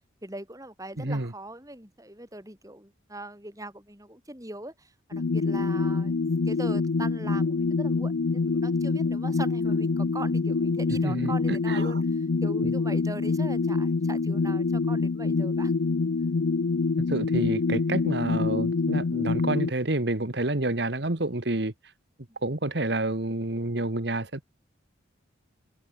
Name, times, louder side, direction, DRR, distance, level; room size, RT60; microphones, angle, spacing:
voice 1, 0.2-15.7 22.3-22.4, right 1 dB, 15° right, 6.7 m, -41 dB
voice 2, 1.0-1.3 11.0-11.3 11.7-11.9 17.1-21.7 22.4-24.4, right 2 dB, 60° right, 1.6 m, -28 dB
sound 1, 5.1-19.7, left 4 dB, 75° left, 0.6 m, -26 dB
head